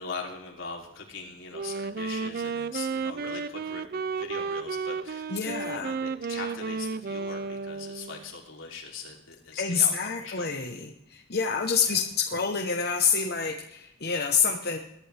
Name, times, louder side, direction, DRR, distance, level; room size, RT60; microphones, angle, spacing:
voice 1, 0.0-10.6 11.7-12.0, left 4 dB, 75° left, 0 dB, 3.2 m, -41 dB
Wind instrument woodwind instrument, 1.5-8.3, right 5 dB, 50° right, 0.4 m, -33 dB
voice 2, 5.3-5.9 9.6-14.8, left 6 dB, 50° left, 2 dB, 1.1 m, -27 dB
22.5 x 11.5 x 3.5 m, 0.81 s
head